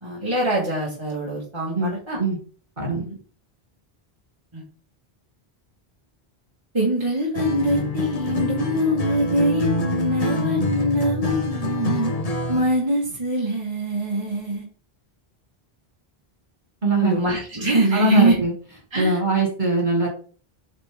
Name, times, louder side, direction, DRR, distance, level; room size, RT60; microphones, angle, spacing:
voice 1, 0.0-2.2 3.0-3.1 4.5-4.6 6.7-12.1 12.5-14.7 17.0-18.4 18.9-19.2, right 1 dB, 25° right, -4 dB, 1.7 m, -23 dB
voice 2, 1.7-2.4 2.8-3.0 16.8-17.2 17.9-18.5 18.9-20.1, right 2 dB, 45° right, -1 dB, 2.8 m, -21 dB
Acoustic guitar, 7.3-12.7, left 2 dB, 40° left, 0.8 m, -26 dB
8.5 x 4.3 x 3.6 m, 0.40 s
omnidirectional pair, 1.1 m